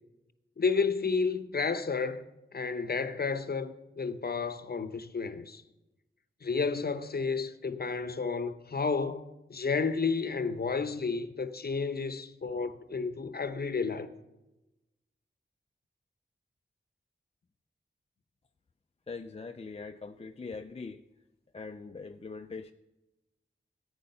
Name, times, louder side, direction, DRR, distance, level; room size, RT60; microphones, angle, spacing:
voice 1, 0.6-2.2 2.5-5.6 6.4-14.1, left 4 dB, 50° left, 0.8 m, -31 dB
voice 2, 19.1-21.0 21.5-22.7, left 4 dB, 30° left, 0.4 m, -42 dB
14.5 x 9.6 x 5.6 m
wide cardioid pair, 80°, 20 cm